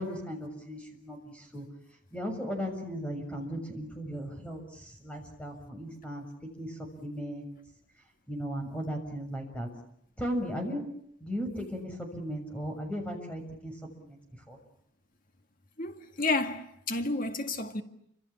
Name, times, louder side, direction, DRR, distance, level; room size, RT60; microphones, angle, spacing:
voice 1, 0.0-1.7 2.1-6.2 6.6-7.5 8.3-9.7 10.2-10.8 11.2-14.2 14.5-14.6, equal, 5° left, 6.7 m, -36 dB
voice 2, 15.8-17.8, left 3 dB, 45° left, 2.0 m, -31 dB
29.5 x 26.5 x 7.2 m
head